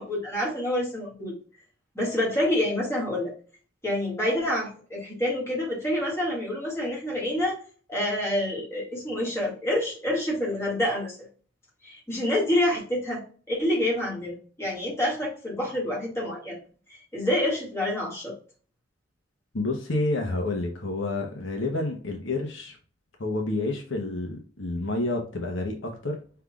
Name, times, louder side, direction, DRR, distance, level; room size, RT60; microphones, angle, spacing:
voice 1, 0.0-1.3 2.0-3.3 3.8-7.6 7.9-11.2 11.8-13.2 13.5-16.6 17.1-18.3, left 1 dB, 15° left, 2.0 m, -27 dB
voice 2, 19.5-22.8 23.2-26.2, left 2 dB, 70° left, 0.9 m, -29 dB
5.6 x 3.4 x 2.4 m
head